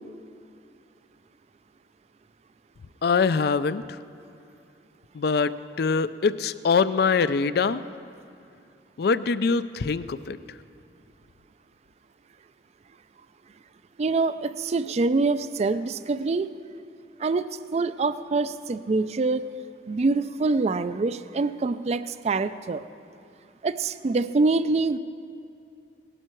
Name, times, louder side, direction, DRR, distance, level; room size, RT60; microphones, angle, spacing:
voice 1, 3.0-4.0 5.1-7.8 9.0-10.6, left 5 dB, 60° left, 15 dB, 0.4 m, -24 dB
voice 2, 14.0-16.5 17.2-19.5 19.9-22.8 23.6-25.0, right 3 dB, 35° right, 13 dB, 0.3 m, -25 dB
18.0 x 12.0 x 4.5 m, 2.5 s
head